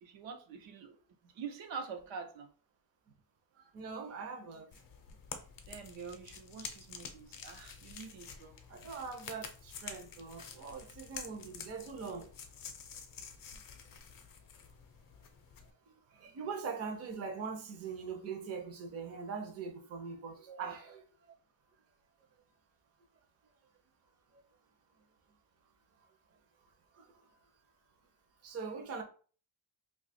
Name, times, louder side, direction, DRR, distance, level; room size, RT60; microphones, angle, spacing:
voice 1, 0.0-2.5 5.7-8.6 20.5-20.9, right 6 dB, 85° right, 0.8 m, -46 dB
voice 2, 3.6-4.7 8.7-12.3 16.1-21.0 26.9-27.1 28.4-29.0, right 5 dB, 35° right, 0.5 m, -42 dB
sound 1, 4.7-15.7, left 6 dB, 50° left, 0.6 m, -49 dB
2.8 x 2.3 x 4.0 m
cardioid pair, 165°, 44 cm